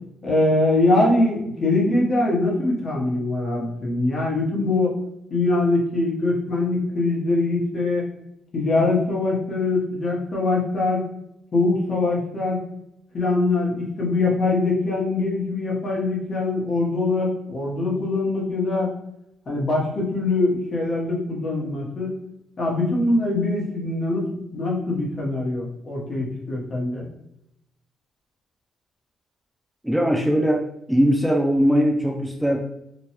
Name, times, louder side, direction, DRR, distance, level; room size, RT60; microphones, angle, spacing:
voice 1, 0.2-5.0 5.3-8.0 8.5-11.1 11.5-12.6 13.1-18.9 19.5-22.1 22.6-27.1, left 2 dB, 45° left, -3 dB, 1.0 m, -23 dB
voice 2, 29.8-30.6 30.9-32.6, equal, 5° right, 1 dB, 0.3 m, -20 dB
3.0 x 2.2 x 2.9 m, 0.80 s
cardioid pair, 90°, 0 cm